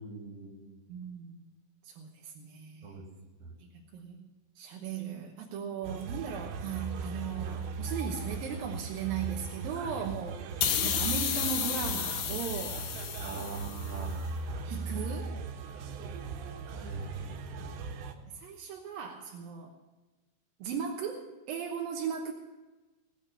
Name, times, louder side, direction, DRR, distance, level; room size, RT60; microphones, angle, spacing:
voice 1, 0.0-0.7 2.8-3.0 3.4-3.5 9.7-9.9 13.2-14.3 16.6-17.8, right 3 dB, 40° right, 0 dB, 3.8 m, -43 dB
voice 2, 0.9-1.4 1.8-3.0 3.6-4.3 4.6-12.9 13.3-13.7 14.6-15.3 18.3-19.7 20.6-22.3, right 7 dB, 70° right, 0 dB, 2.3 m, -37 dB
sound 1, 5.8-18.1, right 4 dB, 90° right, 3.8 m, -38 dB
sound 2, 10.6-14.0, left 9 dB, 70° left, 3.4 m, -32 dB
20.0 x 8.6 x 7.0 m, 1.2 s
omnidirectional pair, 5.5 m